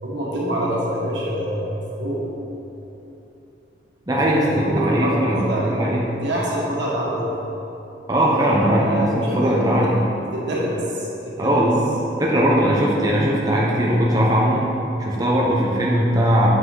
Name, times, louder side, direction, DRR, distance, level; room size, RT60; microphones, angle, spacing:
voice 1, 0.0-2.3 4.1-7.5 8.8-9.8 10.3-11.6, equal, 85° right, -5 dB, 1.6 m, -26 dB
voice 2, 4.1-6.0 8.1-10.0 11.4-11.8 12.2-14.7 15.0-16.5, equal, 20° right, -4 dB, 0.8 m, -19 dB
7.8 x 5.7 x 3.9 m, 3.0 s
head